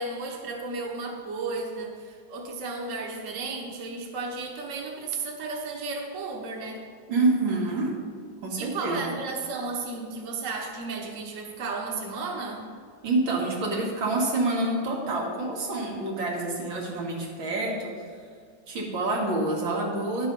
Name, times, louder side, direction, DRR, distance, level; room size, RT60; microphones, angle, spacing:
voice 1, 0.0-6.8 8.6-12.7, right 3 dB, 45° right, 1 dB, 1.4 m, -34 dB
voice 2, 7.1-8.0 8.4-9.0 13.0-17.9 18.7-20.3, right 2 dB, 85° right, -2 dB, 2.5 m, -27 dB
11.5 x 6.4 x 5.4 m, 2.1 s
omnidirectional pair, 2.1 m